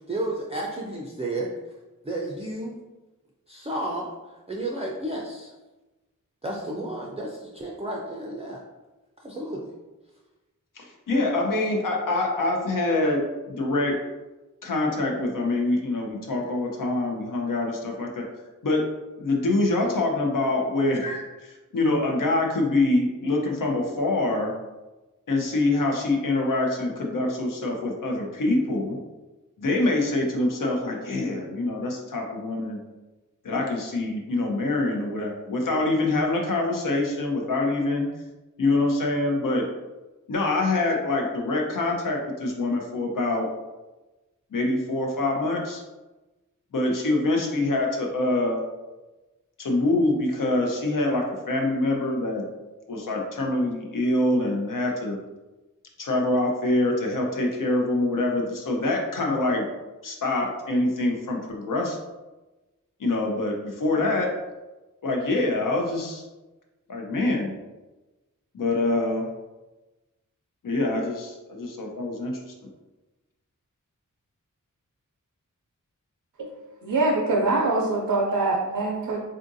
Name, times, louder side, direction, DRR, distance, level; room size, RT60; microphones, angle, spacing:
voice 1, 0.1-1.5 2.0-2.8 3.5-4.1 4.5-5.5 6.4-8.6 9.2-9.7, right 1 dB, 20° right, -3 dB, 0.4 m, -32 dB
voice 2, 10.8-14.0 14.6-18.2 18.6-18.9 19.2-24.5 25.3-29.0 29.6-32.8 33.4-38.1 38.6-39.7 40.3-43.5 44.5-45.8 46.7-48.6 49.6-52.4 52.9-55.2 56.0-59.6 60.0-62.0 63.0-64.3 65.0-66.2 66.9-67.5 68.5-69.3 70.6-72.4, left 2 dB, 75° left, 1 dB, 0.7 m, -25 dB
voice 3, 76.8-79.2, right 2 dB, 90° right, -2 dB, 0.5 m, -24 dB
3.7 x 2.5 x 2.6 m, 1.1 s
wide cardioid pair, 75°, 33 cm